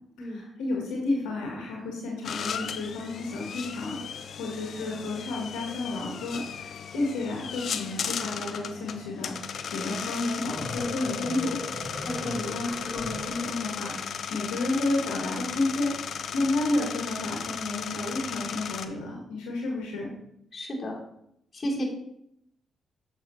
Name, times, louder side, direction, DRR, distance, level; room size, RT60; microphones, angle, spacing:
voice 1, 0.2-4.0 4.4-11.6 11.9-12.1 12.3-15.9 16.3-20.1, left 2 dB, 90° left, -2 dB, 1.4 m, -31 dB
sound 1, 2.2-18.9, left 7 dB, 65° left, 0.5 m, -36 dB
sound 2, 10.4-14.1, left 2 dB, 20° left, 2.5 m, -38 dB
voice 2, 12.0-12.4 20.5-21.0 21.5-21.8, equal, 40° left, -3 dB, 2.8 m, -32 dB
7.2 x 6.2 x 3.1 m, 0.76 s
supercardioid pair, 55°, 0 cm